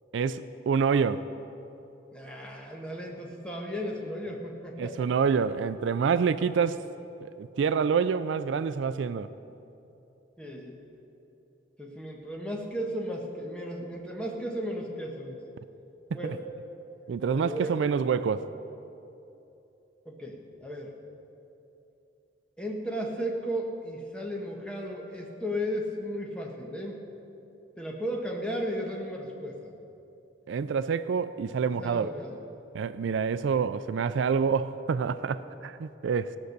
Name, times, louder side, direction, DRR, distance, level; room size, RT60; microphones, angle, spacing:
voice 1, 0.1-1.3 4.8-6.8 7.2-9.3 16.1-16.4 17.1-18.4 30.5-32.1 32.7-36.4, right 6 dB, 75° right, 14 dB, 0.3 m, -27 dB
voice 2, 2.1-5.1 10.4-10.8 11.8-15.4 16.1-16.4 17.3-17.8 20.0-20.9 22.6-27.0 27.8-29.7 31.8-32.4, equal, 5° left, -1 dB, 1.3 m, -35 dB
17.5 x 6.4 x 6.7 m, 2.9 s
head